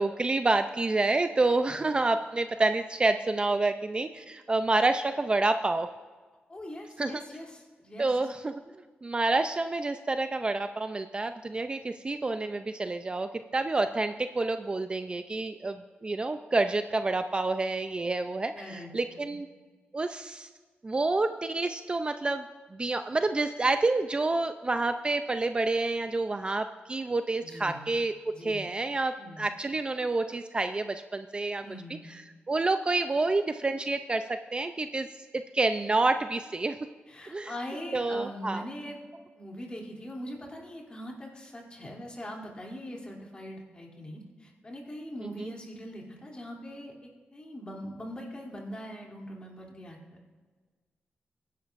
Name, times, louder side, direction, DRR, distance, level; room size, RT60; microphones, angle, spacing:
voice 1, 0.0-5.9 7.0-7.1 8.0-8.5 9.0-19.5 19.9-20.5 20.8-22.5 22.7-28.2 28.4-31.6 32.1-32.2 32.5-35.1 35.5-36.8 37.3-37.5 37.9-38.6 45.2-45.5, right 2 dB, 25° right, 8 dB, 0.4 m, -28 dB
voice 2, 6.5-8.1 18.5-19.4 27.4-27.8 28.3-28.6 29.2-29.5 31.6-32.1 37.1-39.0 39.3-50.0, equal, 25° left, -1 dB, 2.9 m, -42 dB
22.5 x 11.0 x 2.5 m, 1.4 s
wide cardioid pair, 100°, 4 cm